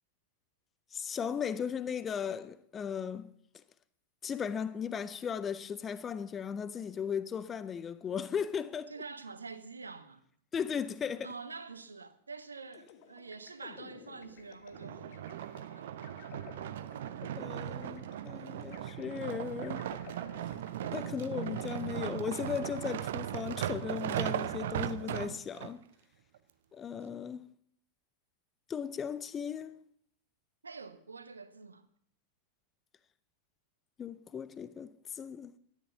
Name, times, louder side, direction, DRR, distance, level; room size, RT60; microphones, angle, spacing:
voice 1, 0.9-3.3 4.2-8.9 10.5-11.3 17.4-19.8 20.9-25.8 26.7-27.5 28.7-29.8 34.0-35.5, left 7 dB, 20° left, 0.6 m, -37 dB
voice 2, 8.9-10.2 11.2-15.3 15.7-16.4 30.6-31.9, right 4 dB, 75° right, 1.0 m, -47 dB
sound 1, 12.7-23.2, left 8 dB, 45° left, 1.5 m, -54 dB
Recycle Bin Roll Stop Plastic Wheel Cement, 14.7-25.7 26.4-26.5, right 11 dB, 55° right, 0.7 m, -38 dB
13.0 x 11.0 x 7.0 m
figure-of-eight pair, 90°, 0 cm